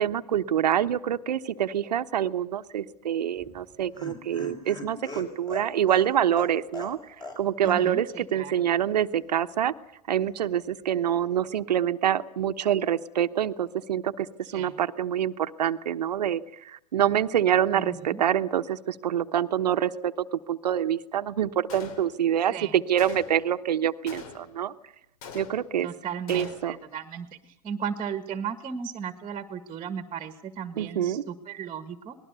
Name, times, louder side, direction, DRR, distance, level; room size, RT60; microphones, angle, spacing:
voice 1, 0.0-7.0 7.4-9.7 10.1-14.3 14.5-24.7 25.3-25.9 26.3-26.8 30.8-31.2, right 10 dB, 85° right, 11 dB, 1.1 m, -26 dB
Laughter, 3.4-7.4 7.7-7.8 8.1-8.2, left 3 dB, 20° left, 5.2 m, -40 dB
voice 2, 7.6-8.5 14.5-14.8 17.7-18.2 22.5-22.7 25.8-27.3 27.6-32.2, right 7 dB, 25° right, 10 dB, 1.7 m, -35 dB
Gunshot gunfire, 21.7-22.4 23.0-23.5 24.1-24.7 25.2-25.9 26.3-26.9, left 6 dB, 55° left, 3.0 m, -44 dB
28.0 x 19.5 x 6.9 m, 0.76 s
hypercardioid pair, 115°, 21 cm